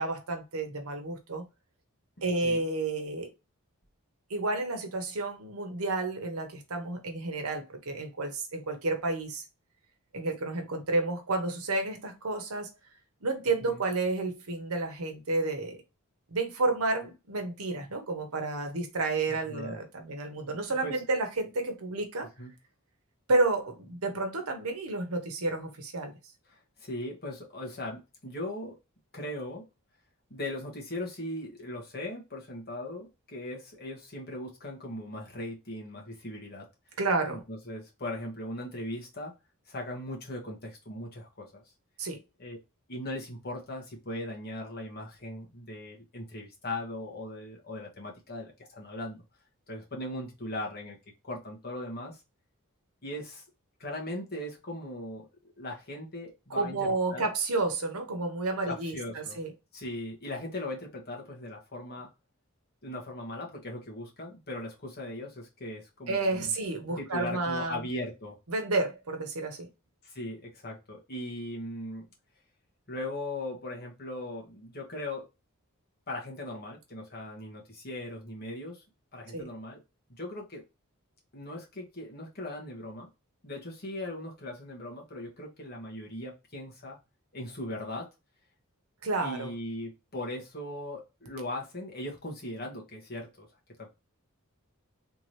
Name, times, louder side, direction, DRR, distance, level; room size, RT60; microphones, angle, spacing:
voice 1, 0.0-1.4 2.2-3.3 4.3-9.4 10.1-12.7 13.2-15.8 16.3-22.3 23.3-26.1 37.0-37.4 42.0-42.2 56.5-59.5 66.1-67.8 68.5-69.7 79.3-79.5 89.0-89.5, right 3 dB, 80° right, 1.0 m, -31 dB
voice 2, 19.3-19.8 20.8-21.0 22.4-22.5 26.5-28.8 29.1-29.6 30.3-36.6 37.3-39.3 39.7-41.6 42.4-42.6 42.9-49.2 49.7-51.0 51.2-52.2 53.0-53.4 53.8-55.3 55.6-57.3 58.7-59.4 59.7-62.1 62.8-66.5 67.0-68.4 70.0-72.1 72.9-75.3 76.1-78.8 79.1-79.8 80.1-80.6 81.3-83.1 83.4-87.0 87.3-88.1 89.2-93.5 93.8-93.9, left 1 dB, 45° left, 1.5 m, -39 dB
3.5 x 2.9 x 3.2 m
head